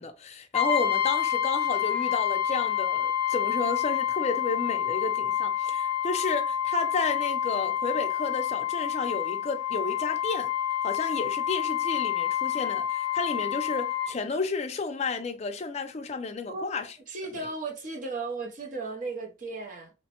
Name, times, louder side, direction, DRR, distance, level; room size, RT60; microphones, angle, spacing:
voice 1, 0.0-10.5 10.8-16.9, left 3 dB, 35° left, 0.4 m, -32 dB
Brass instrument, 0.5-14.2, left 10 dB, 5° left, 1.1 m, -28 dB
voice 2, 16.5-19.9, right 3 dB, 40° right, 0.6 m, -36 dB
3.0 x 2.1 x 2.8 m
head